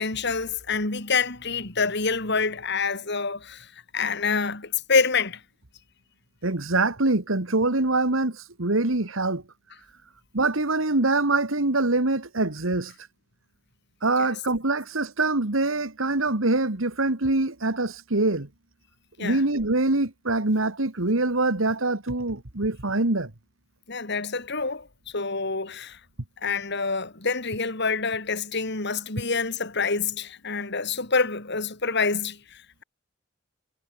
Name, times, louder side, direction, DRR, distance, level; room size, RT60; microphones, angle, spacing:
voice 1, 0.0-5.4 14.2-14.3 19.2-19.4 23.9-24.9 25.1-26.0 26.4-32.8, left 4 dB, 60° left, 3.5 m, -27 dB
voice 2, 6.4-9.4 10.3-12.9 14.0-18.5 19.2-23.3, right 2 dB, 80° right, 2.1 m, -24 dB
head